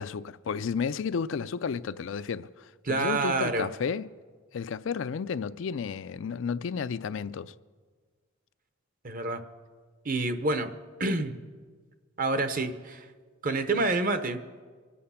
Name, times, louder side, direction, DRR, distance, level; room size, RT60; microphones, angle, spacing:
voice 1, 0.0-4.1 4.5-7.5, left 6 dB, 70° left, 0.4 m, -32 dB
voice 2, 2.8-3.7 9.0-9.4 10.0-10.7 11.0-11.3 12.2-13.1 13.4-14.4, right 2 dB, 40° right, 0.9 m, -28 dB
24.5 x 8.6 x 5.7 m
head